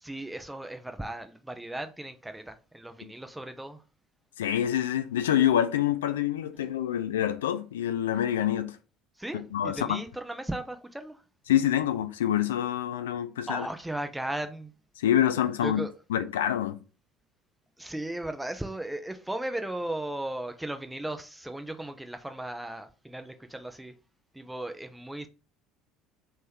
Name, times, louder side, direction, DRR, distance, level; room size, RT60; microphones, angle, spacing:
voice 1, 0.0-3.8 9.2-11.2 13.5-14.7 15.6-15.9 17.8-23.9 24.3-25.3, right 1 dB, 5° right, 0.5 m, -36 dB
voice 2, 4.4-8.8 9.5-10.0 11.5-13.7 15.0-15.8 16.1-16.8, left 11 dB, 70° left, 0.4 m, -26 dB
3.5 x 3.2 x 4.3 m
figure-of-eight pair, 60°, 0 cm